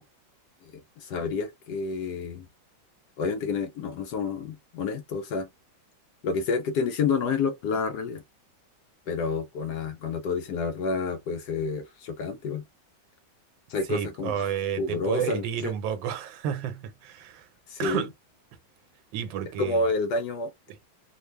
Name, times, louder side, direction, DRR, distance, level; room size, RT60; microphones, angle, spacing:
voice 1, 0.6-2.5 3.2-5.5 6.2-8.2 9.1-12.6 13.7-14.5 14.8-15.7 17.7-18.1 19.6-20.5, left 4 dB, 75° left, 1.0 m, -29 dB
voice 2, 13.9-17.5 17.8-18.1 19.1-19.9, right 9 dB, 75° right, 1.4 m, -31 dB
3.5 x 2.1 x 3.2 m
omnidirectional pair, 2.2 m